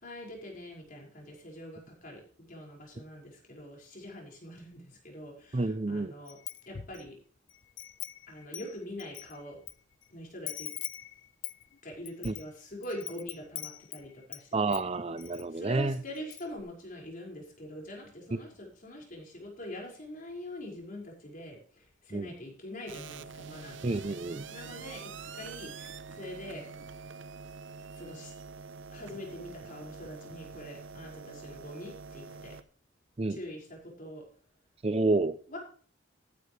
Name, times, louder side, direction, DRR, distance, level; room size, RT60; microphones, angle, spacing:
voice 1, 0.0-6.4 6.7-7.1 8.3-9.6 10.1-10.7 11.8-14.9 15.3-24.1 24.5-25.0 25.3-26.6 27.9-28.3 28.9-32.6 33.3-34.2 35.5-35.6, left 1 dB, 45° left, 5.5 m, -44 dB
voice 2, 5.5-6.1 12.2-12.3 14.5-16.0 22.1-22.3 23.8-24.5 33.2-33.4 34.8-35.4, right 3 dB, 30° right, 0.6 m, -29 dB
Wind chime, 6.3-7.1 7.5-9.7 10.0-10.1 10.5-14.5 14.7-15.4 15.8-15.9 16.2-16.6, left 14 dB, 70° left, 0.6 m, -42 dB
sound 1, 22.9-32.6, right 5 dB, 75° right, 0.8 m, -45 dB
14.0 x 11.5 x 3.3 m
head